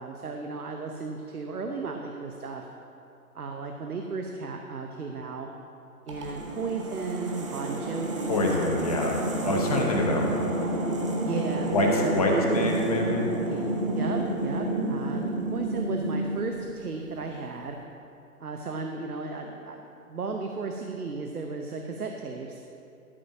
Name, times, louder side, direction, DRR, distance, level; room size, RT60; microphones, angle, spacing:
voice 1, 0.0-2.7 3.3-5.5 6.1-8.6 9.4-10.2 11.2-12.8 13.5-13.6 13.9-17.8 18.4-22.6, right 4 dB, 70° right, 3 dB, 0.9 m, -35 dB
sound 1, 6.1-17.2, right 1 dB, 20° right, 0.6 m, -30 dB
voice 2, 8.3-9.2 9.4-10.3 11.7-13.3, left 2 dB, 25° left, 0 dB, 0.8 m, -26 dB
12.5 x 5.1 x 5.8 m, 2.8 s
figure-of-eight pair, 135°, 46 cm